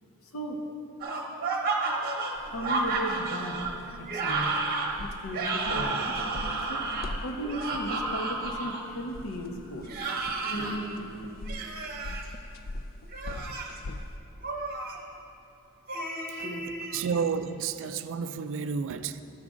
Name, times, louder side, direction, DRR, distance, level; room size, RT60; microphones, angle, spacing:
voice 1, 0.2-0.6 2.5-3.6 4.0-4.6 5.0-6.9 7.2-9.9 16.4-17.3, equal, 70° left, 3 dB, 0.8 m, -36 dB
sound 1, 1.0-8.8 9.8-10.8 11.5-12.2 13.0-13.8 14.4-15.0 15.9-17.0, right 3 dB, 45° right, 0.9 m, -31 dB
sound 2, 2.3-14.2, left 1 dB, 45° left, 0.3 m, -43 dB
sound 3, 5.6-9.2 9.5-11.3, right 1 dB, 85° left, 1.3 m, -41 dB
voice 2, 16.9-19.2, right 6 dB, 60° right, 11 dB, 0.3 m, -31 dB
12.5 x 5.1 x 3.7 m, 2.7 s
head